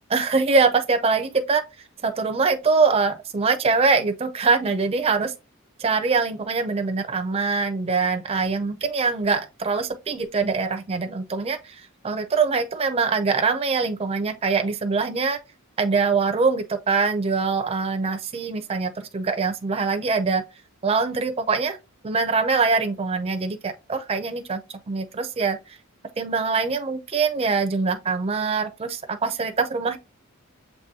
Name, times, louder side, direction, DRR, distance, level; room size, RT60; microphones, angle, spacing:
voice 1, 0.1-1.6 2.0-5.3 5.8-15.4 15.8-20.4 20.8-21.8 22.0-24.6 24.9-25.6 26.2-30.0, right 4 dB, 25° right, 0.4 m, -23 dB
6.6 x 3.0 x 2.7 m
head